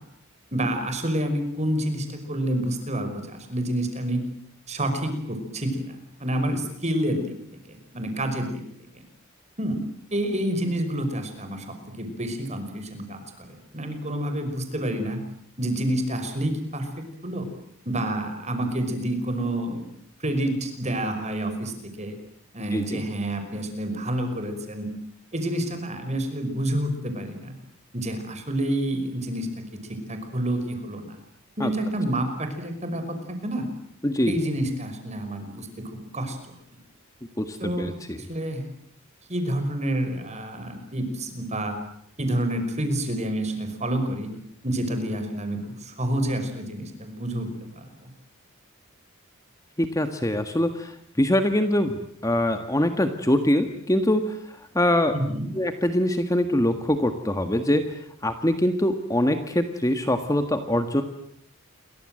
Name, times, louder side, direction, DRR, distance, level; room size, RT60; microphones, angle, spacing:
voice 1, 0.5-4.2 4.7-7.3 7.7-8.6 9.6-9.8 10.1-15.2 15.6-17.5 17.9-19.9 20.2-21.7 22.0-22.2 22.5-24.9 25.3-27.5 27.9-29.6 29.9-31.2 31.6-33.7 34.3-35.7 36.1-36.5 37.6-37.9 38.2-38.7 39.3-41.8 42.2-44.3 44.6-47.8 55.1-55.5, right 1 dB, 35° right, 7 dB, 5.6 m, -28 dB
voice 2, 22.7-23.0 31.6-31.7 34.0-34.3 37.4-38.2 49.8-55.1 55.5-58.0 58.2-61.0, left 1 dB, 15° left, 7 dB, 1.6 m, -24 dB
29.0 x 23.5 x 7.8 m, 0.68 s
head